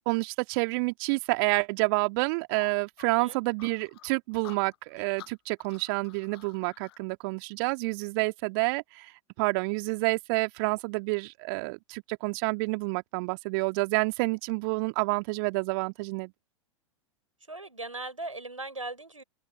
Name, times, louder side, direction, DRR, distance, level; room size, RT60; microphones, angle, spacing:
voice 1, 0.1-16.3, right 30 dB, 45° right, 2.5 m, -29 dB
sound 1, 2.5-7.0, left 17 dB, 50° left, 7.7 m, -51 dB
voice 2, 3.0-3.4 17.5-19.2, right 2 dB, 85° right, 4.9 m, -39 dB
figure-of-eight pair, 95°, 16 cm